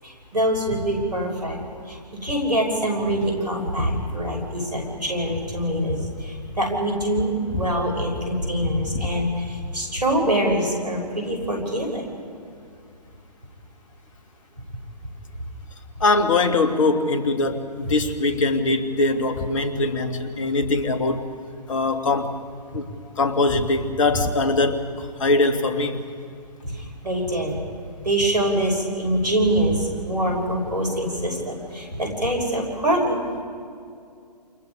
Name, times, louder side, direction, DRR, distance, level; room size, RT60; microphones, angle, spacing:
voice 1, 0.0-1.6 1.9-2.0 2.2-12.0 26.6-27.6 28.0-33.2, right 1 dB, 75° right, 0 dB, 6.5 m, -24 dB
voice 2, 16.0-21.2 21.7-22.4 22.7-22.8 23.2-26.1, left 2 dB, 50° left, 7 dB, 2.3 m, -22 dB
29.0 x 28.5 x 5.0 m, 2.4 s
figure-of-eight pair, 130°, 21 cm